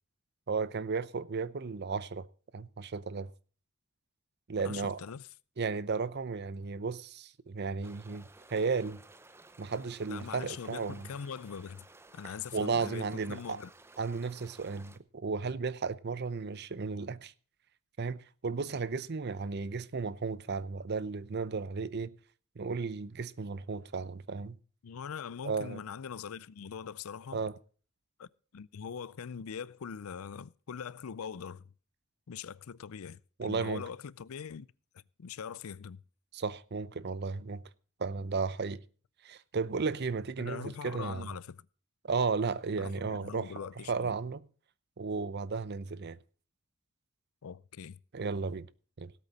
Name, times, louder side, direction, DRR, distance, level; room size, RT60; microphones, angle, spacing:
voice 1, 0.5-2.3 2.5-3.3 4.5-5.0 5.6-9.0 9.6-11.1 12.5-13.6 14.0-17.3 18.0-22.1 22.6-24.6 25.4-25.8 27.3-27.5 33.4-33.8 36.3-37.6 38.0-38.8 39.2-41.3 42.0-43.5 43.9-44.5 45.0-46.2 48.1-48.7 49.0-49.1, right 4 dB, 50° right, 0.6 m, -34 dB
voice 2, 4.6-5.3 10.1-11.9 12.1-13.7 24.8-27.4 28.2-31.7 32.3-34.7 35.2-36.0 40.4-41.7 42.8-44.1 47.4-48.0, left 7 dB, 80° left, 0.5 m, -42 dB
sound 1, 7.8-15.0, right 2 dB, 10° right, 0.6 m, -56 dB
17.5 x 8.4 x 4.1 m
head